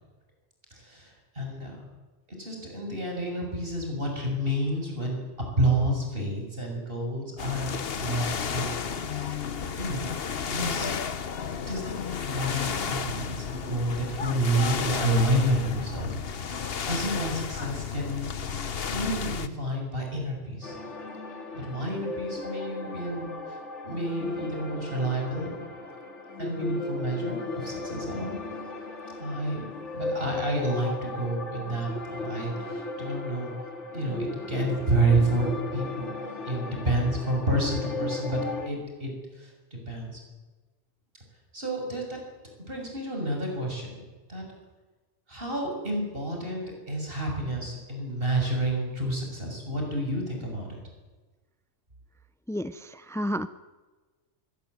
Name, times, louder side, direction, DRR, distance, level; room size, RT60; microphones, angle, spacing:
voice 1, 0.7-1.8 2.4-5.2 5.6-7.7 8.0-8.7 9.1-9.4 9.8-10.1 10.5-11.0 11.6-11.9 12.3-18.3 18.9-20.8 21.5-23.6 23.8-25.6 26.4-28.4 29.2-29.6 29.9-33.5 33.9-36.1 36.5-38.4 38.7-40.2 41.5-42.2 42.7-44.0 44.3-44.5 45.3-50.7, right 1 dB, 50° right, 1 dB, 7.0 m, -29 dB
sound 1, 7.4-19.5, left 6 dB, 55° left, 1.2 m, -32 dB
sound 2, 20.6-38.7, left 3 dB, 85° left, 2.5 m, -36 dB
voice 2, 52.5-53.5, equal, 5° left, 13 dB, 0.3 m, -31 dB
22.5 x 18.0 x 9.6 m, 1.3 s
omnidirectional pair, 1.2 m